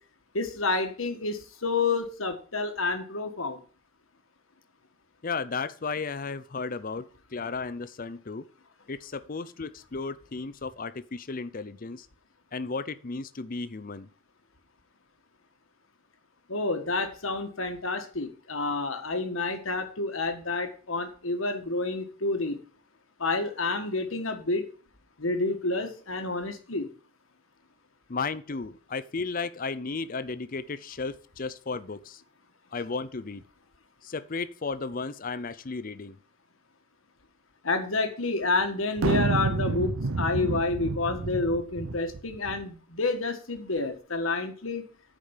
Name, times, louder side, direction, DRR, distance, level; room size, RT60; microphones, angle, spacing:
voice 1, 0.3-3.6 16.5-22.6 23.2-24.6 25.2-26.9 37.6-44.8, left 3 dB, 70° left, 7 dB, 1.6 m, -29 dB
voice 2, 5.2-8.5 8.9-12.1 12.5-14.1 28.1-32.2 32.7-33.4 34.0-36.2, left 4 dB, 40° left, 14 dB, 0.6 m, -34 dB
sound 1, 39.0-42.6, right 3 dB, 75° right, 0.7 m, -29 dB
10.0 x 5.2 x 7.2 m, 0.42 s
head